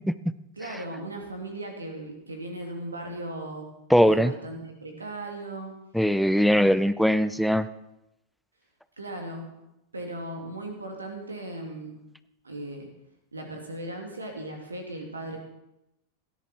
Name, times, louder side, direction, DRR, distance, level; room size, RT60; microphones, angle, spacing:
voice 1, 0.6-3.7 4.0-5.7 6.4-6.7 9.0-9.5 9.9-12.0 12.4-12.9 13.3-15.4, right 1 dB, 75° right, 3 dB, 2.7 m, -37 dB
voice 2, 3.9-4.3 5.9-7.7, equal, ahead, 14 dB, 0.7 m, -20 dB
18.0 x 13.5 x 4.5 m, 0.89 s
figure-of-eight pair, 90°, 0 cm